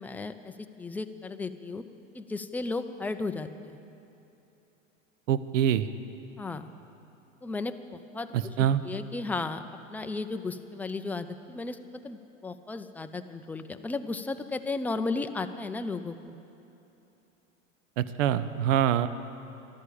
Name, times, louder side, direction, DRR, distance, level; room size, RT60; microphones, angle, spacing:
voice 1, 0.0-1.8 2.1-3.8 6.4-6.7 7.4-9.6 9.9-11.8 12.0-16.4, left 3 dB, 5° left, 8 dB, 0.4 m, -35 dB
voice 2, 5.3-5.9 8.3-8.8 18.0-19.1, right 10 dB, 70° right, 13 dB, 0.8 m, -25 dB
14.0 x 11.5 x 8.6 m, 3.0 s
hypercardioid pair, 100°, 40 cm